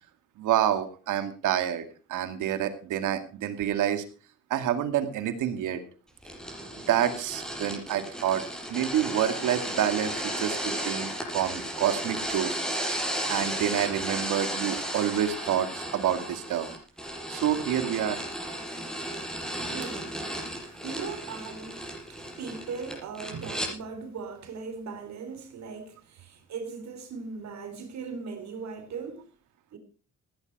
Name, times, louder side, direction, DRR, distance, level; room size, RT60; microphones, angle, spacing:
voice 1, 0.4-1.8 2.1-4.0 4.5-5.8 6.9-8.4 8.7-12.5 12.9-13.0 13.3-16.7 17.3-18.2, right 10 dB, 85° right, 2.2 m, -28 dB
sound 1, 6.2-23.7, equal, ahead, 6.1 m, -34 dB
voice 2, 19.1-29.2 29.7-29.8, right 5 dB, 65° right, 3.7 m, -39 dB
16.5 x 10.5 x 4.7 m
cardioid pair, 90°, 30 cm